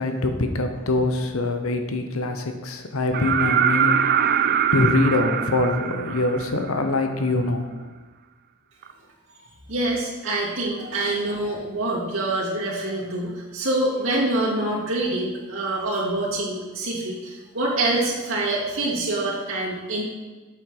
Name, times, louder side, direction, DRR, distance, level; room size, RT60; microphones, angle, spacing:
voice 1, 0.0-7.9, left 2 dB, 75° left, 6 dB, 1.1 m, -24 dB
sound 1, 3.1-6.9 8.8-8.9, right 8 dB, 45° right, 0.4 m, -22 dB
voice 2, 9.7-20.0, right 2 dB, 60° right, -7 dB, 2.6 m, -25 dB
8.7 x 7.0 x 5.0 m, 1.2 s
head